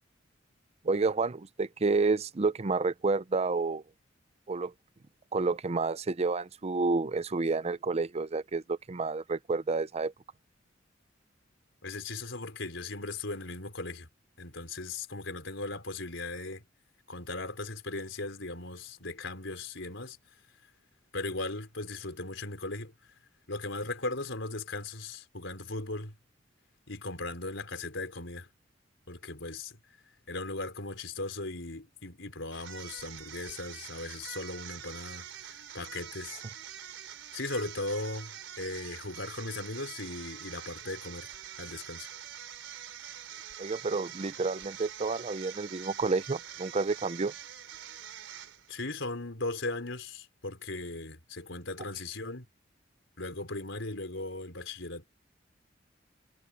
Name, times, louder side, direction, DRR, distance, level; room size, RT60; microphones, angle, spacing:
voice 1, 0.8-3.8 4.5-4.7 5.3-10.1 43.6-47.3, right 3 dB, 35° right, 0.5 m, -29 dB
voice 2, 11.8-14.1 14.4-16.6 17.1-20.2 21.1-22.9 23.5-26.1 26.9-28.5 29.1-29.8 30.3-35.3 35.7-36.4 37.3-42.1 48.7-52.5 53.2-55.1, left 2 dB, 75° left, 4.3 m, -38 dB
sound 1, 32.5-48.8, right 9 dB, 80° right, 4.1 m, -45 dB
head